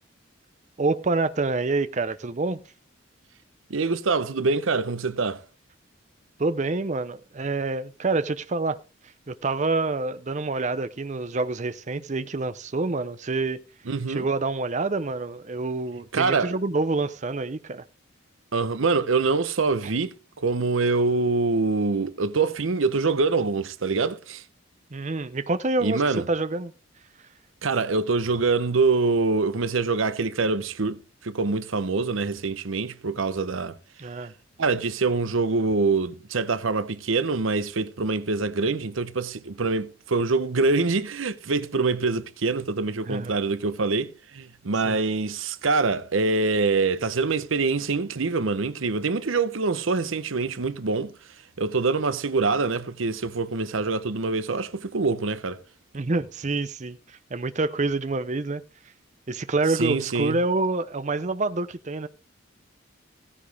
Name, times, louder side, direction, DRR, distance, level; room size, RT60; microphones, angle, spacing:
voice 1, 0.8-2.6 6.4-8.8 9.0-13.6 14.1-17.8 24.9-26.7 34.0-34.3 43.1-43.3 44.8-45.0 55.9-58.6 59.3-62.1, right 3 dB, 35° right, 0.6 m, -27 dB
voice 2, 3.7-5.4 13.9-14.3 16.1-16.5 18.5-24.4 25.8-26.2 27.6-31.0 31.2-33.8 34.6-51.1 51.6-55.6 59.8-60.4, right 3 dB, 80° right, 0.8 m, -25 dB
16.0 x 9.9 x 3.4 m
head